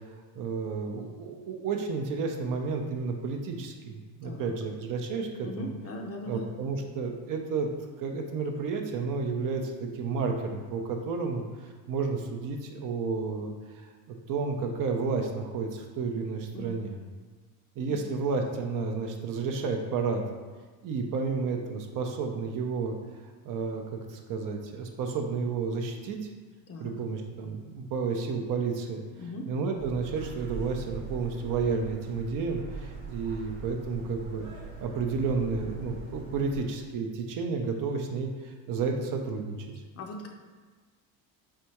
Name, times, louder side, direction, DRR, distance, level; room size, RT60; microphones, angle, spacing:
voice 1, 0.3-5.7 6.3-7.7 8.0-13.9 14.3-17.0 17.8-20.2 20.8-23.0 23.4-23.8 24.1-26.3 26.8-29.1 29.5-34.5 34.8-39.6, right 4 dB, 50° right, 3 dB, 0.5 m, -31 dB
voice 2, 4.2-4.6 5.4-6.4 16.5-16.8 17.9-18.0 26.7-26.9 29.2-29.5 40.0-40.3, left 1 dB, 35° left, 2 dB, 0.5 m, -39 dB
sound 1, 29.8-36.6, right 3 dB, 85° right, 1.1 m, -42 dB
4.2 x 2.3 x 2.9 m, 1.4 s
supercardioid pair, 80°, 43 cm